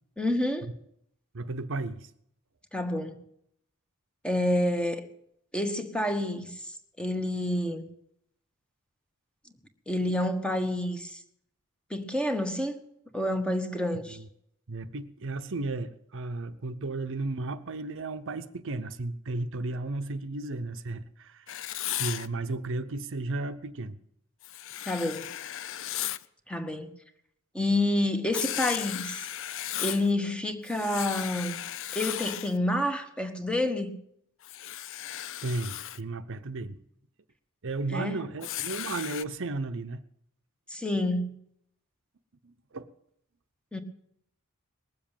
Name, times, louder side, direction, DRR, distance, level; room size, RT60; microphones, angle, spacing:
voice 1, 0.2-0.7 2.7-3.2 4.2-5.0 5.5-7.9 9.9-11.2 11.9-12.8 13.1-14.2 24.9-25.3 26.5-26.9 27.5-29.2 29.8-31.6 31.9-33.9 37.9-38.2 40.7-41.3 43.7-43.8, left 1 dB, 5° left, 1.4 m, -28 dB
voice 2, 1.3-2.1 14.1-14.3 14.7-24.0 35.4-36.8 37.6-40.0 42.4-42.9, right 2 dB, 60° right, 0.8 m, -34 dB
Writing, 21.5-22.3 24.4-26.2 28.3-30.1 30.7-32.6 34.4-36.0 38.4-39.2, left 12 dB, 65° left, 0.6 m, -35 dB
20.0 x 7.5 x 9.0 m
head